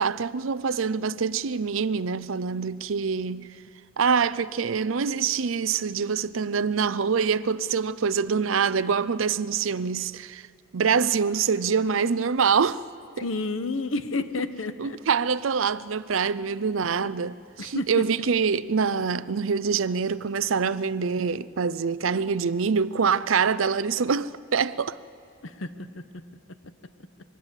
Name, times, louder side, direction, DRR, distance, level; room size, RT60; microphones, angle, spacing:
voice 1, 0.0-3.5 4.0-10.5 10.7-12.8 13.2-13.3 14.8-25.0, right 6 dB, 80° right, 0.6 m, -25 dB
voice 2, 13.2-15.0 17.6-18.1 25.4-26.0, left 3 dB, 90° left, 1.1 m, -30 dB
25.5 x 21.0 x 8.2 m
head